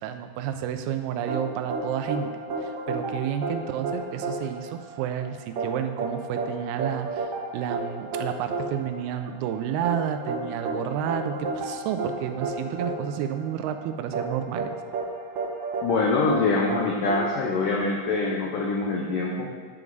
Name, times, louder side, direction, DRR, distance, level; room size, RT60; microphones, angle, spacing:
voice 1, 0.0-2.3 2.6-14.7, right 9 dB, 80° right, 7 dB, 2.4 m, -30 dB
sound 1, 1.3-18.1, right 3 dB, 65° right, 1.9 m, -32 dB
voice 2, 15.8-19.5, left 3 dB, 85° left, -1 dB, 1.8 m, -24 dB
9.2 x 9.1 x 4.0 m, 1.5 s
omnidirectional pair, 5.0 m